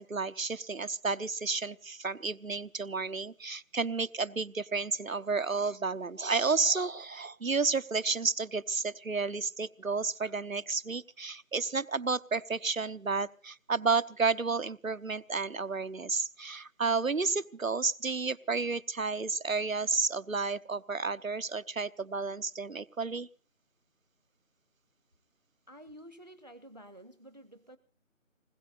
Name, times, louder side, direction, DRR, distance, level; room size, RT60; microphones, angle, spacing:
voice 1, 0.0-23.3, right 4 dB, 85° right, 14 dB, 1.0 m, -31 dB
voice 2, 25.7-27.8, equal, 35° right, 12 dB, 0.7 m, -51 dB
26.5 x 20.5 x 2.6 m, 0.38 s
figure-of-eight pair, 165°, 39 cm